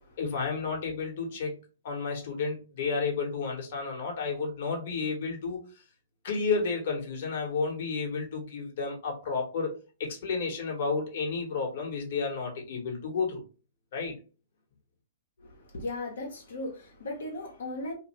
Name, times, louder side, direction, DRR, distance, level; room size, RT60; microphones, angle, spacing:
voice 1, 0.2-1.6 1.8-5.6 6.2-13.4 13.9-14.1, left 4 dB, 55° left, 1 dB, 1.1 m, -31 dB
voice 2, 15.4-17.9, left 2 dB, 80° left, -1 dB, 0.9 m, -37 dB
2.5 x 2.4 x 3.0 m, 0.34 s
hypercardioid pair, 140°, 0 cm